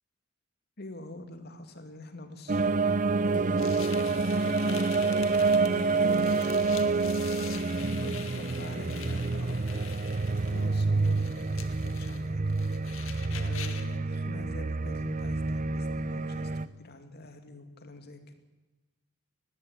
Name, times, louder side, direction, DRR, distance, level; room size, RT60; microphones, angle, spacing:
voice 1, 0.8-4.9 5.4-6.8 7.9-9.8 10.4-11.3 11.8-12.5 13.3-18.3, left 1 dB, 55° left, 7 dB, 2.5 m, -45 dB
sound 1, 2.5-16.7, right 3 dB, 40° right, 0.7 m, -28 dB
sound 2, 3.6-14.0, left 9 dB, 85° left, 1.9 m, -46 dB
19.5 x 16.0 x 9.2 m, 1.1 s
head